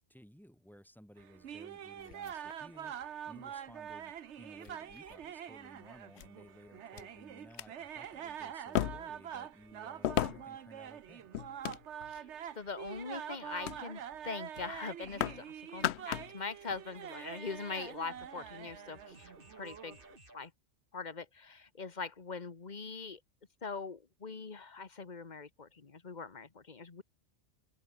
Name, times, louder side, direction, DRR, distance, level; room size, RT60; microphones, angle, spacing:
voice 1, 0.1-11.3, equal, ahead, 5.1 m, -57 dB
sound 1, 1.2-20.2, right 9 dB, 90° right, 1.2 m, -45 dB
sound 2, 2.0-3.0 3.9-4.0 4.6-5.2 6.2-6.3 7.0-7.1 7.4-7.7 8.7-9.3 10.0-10.6 11.3-12.2 12.7-13.0 13.6-13.8 14.1-14.3 14.5-15.4 15.7-16.4 16.7-16.8, left 11 dB, 75° left, 0.9 m, -36 dB
voice 2, 12.5-20.0 20.3-20.5 20.9-23.2 23.6-27.0, left 4 dB, 40° left, 1.5 m, -42 dB
sound 3, 15.9-20.5, right 1 dB, 50° right, 8.3 m, -61 dB
omnidirectional pair, 1.1 m